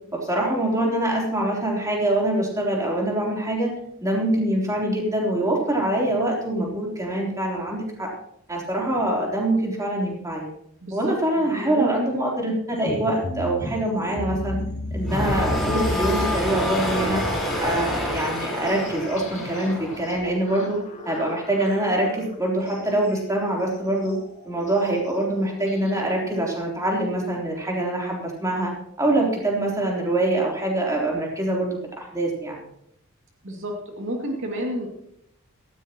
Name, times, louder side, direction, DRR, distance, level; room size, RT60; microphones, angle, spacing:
voice 1, 0.1-3.7 4.0-8.1 8.5-10.5 10.9-14.6 14.9-17.2 17.6-20.8 21.1-24.2 24.5-28.7 29.0-32.6, right 1 dB, 15° right, -2 dB, 3.6 m, -24 dB
voice 2, 10.8-12.1 33.4-34.9, equal, 60° right, 0 dB, 2.5 m, -30 dB
sound 1, 12.7-26.0, left 1 dB, 35° left, 2.1 m, -35 dB
sound 2, 15.0-20.2, equal, ahead, 4.4 m, -27 dB
17.5 x 14.5 x 3.0 m, 0.75 s
head